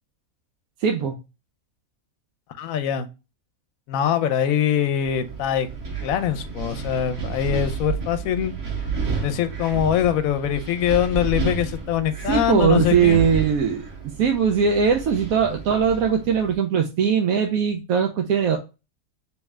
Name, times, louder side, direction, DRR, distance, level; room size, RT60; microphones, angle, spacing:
voice 1, 0.8-1.2 12.3-13.9 14.2-18.6, right 7 dB, 75° right, 3 dB, 1.0 m, -20 dB
voice 2, 2.6-3.1 3.9-5.7 6.0-8.5 9.2-13.2, left 10 dB, 75° left, 11 dB, 1.0 m, -23 dB
Wind, 5.0-16.5, right 5 dB, 60° right, 1.4 m, -31 dB
3.2 x 3.2 x 3.4 m, 0.28 s
omnidirectional pair, 1.5 m